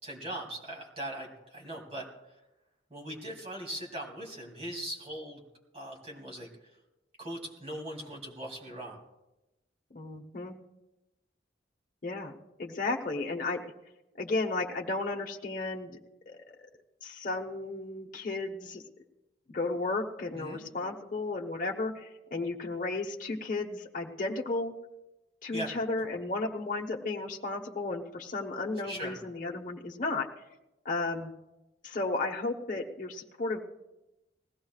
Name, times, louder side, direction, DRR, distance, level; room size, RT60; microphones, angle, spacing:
voice 1, 0.0-2.0 2.9-5.4 5.7-6.5 7.2-9.0 20.3-20.6 25.5-25.7 28.8-29.2, right 1 dB, 35° right, 0 dB, 2.6 m, -40 dB
voice 2, 9.9-10.5 12.0-12.3 12.6-13.6 14.2-16.0 16.3-16.4 17.0-18.8 19.5-24.7 25.4-30.3 30.8-31.3 31.8-33.6, left 3 dB, 45° left, 1 dB, 1.1 m, -33 dB
20.0 x 16.0 x 2.4 m, 0.97 s
head